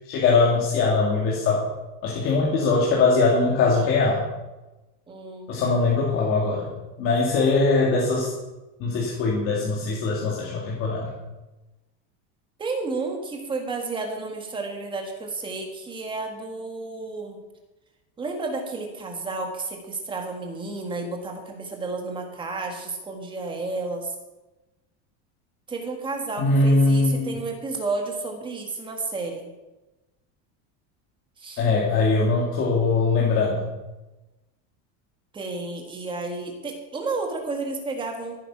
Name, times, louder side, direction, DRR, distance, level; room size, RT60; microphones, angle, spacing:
voice 1, 0.0-1.6 2.0-4.3 5.5-6.7 7.0-8.3 8.8-11.1 26.4-27.3 31.6-33.7, left 3 dB, 35° left, -4 dB, 2.4 m, -21 dB
voice 2, 5.1-5.6 12.6-17.4 18.2-24.2 25.7-29.5 31.4-31.6 35.3-38.4, right 3 dB, 15° right, 2 dB, 1.8 m, -31 dB
14.0 x 9.3 x 6.0 m, 1.1 s
cardioid pair, 180°, 38 cm